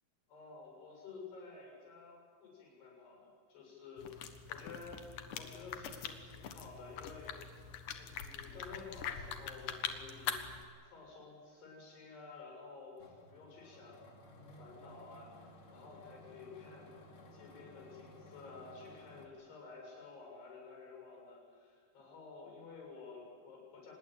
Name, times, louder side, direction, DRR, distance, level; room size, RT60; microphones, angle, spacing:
voice 1, 0.3-5.0 5.4-7.4 7.9-23.9, left 4 dB, 85° left, -1 dB, 9.1 m, -52 dB
sound 1, 4.0-10.6, left 8 dB, 65° left, 2.7 m, -43 dB
sound 2, 13.0-19.3, left 1 dB, 35° left, 3.1 m, -57 dB
25.5 x 20.5 x 9.1 m, 2.2 s
omnidirectional pair, 4.6 m